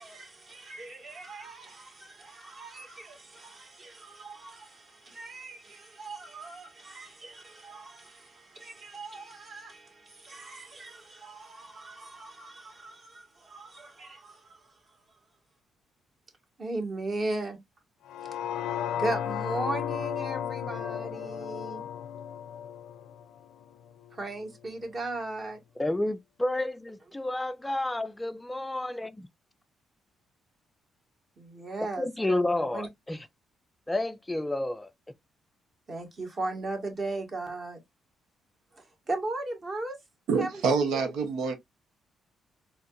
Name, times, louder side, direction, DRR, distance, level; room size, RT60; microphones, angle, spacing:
voice 1, 0.0-15.0 16.6-17.6 18.9-21.8 24.1-25.6 31.4-32.9 35.9-37.8 38.7-40.0 40.4-40.6 40.9-41.0, right 2 dB, 40° right, 1.9 m, -38 dB
sound 1, 18.1-24.2 24.6-24.7, left 9 dB, 85° left, 0.5 m, -34 dB
voice 2, 25.8-29.1 32.0-33.2 33.9-34.9, left 1 dB, 10° left, 0.3 m, -30 dB
voice 3, 40.3-41.5, right 5 dB, 85° right, 0.9 m, -26 dB
4.2 x 3.7 x 2.5 m
cardioid pair, 90°, 0 cm